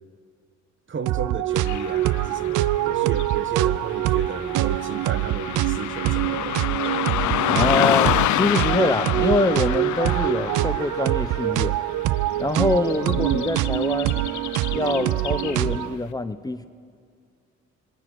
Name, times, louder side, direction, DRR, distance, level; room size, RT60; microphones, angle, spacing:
voice 1, 0.9-6.6, right 5 dB, 40° right, 1.3 m, -34 dB
sound 1, 1.1-16.0, right 15 dB, 80° right, 0.5 m, -24 dB
Car passing by / Traffic noise roadway noise, 1.6-15.9, left 13 dB, 75° left, 0.7 m, -28 dB
voice 2, 7.5-11.8 12.4-14.2 14.7-16.7, left 2 dB, 10° left, 0.8 m, -24 dB
26.5 x 22.5 x 6.3 m
cardioid pair, 90°, 30 cm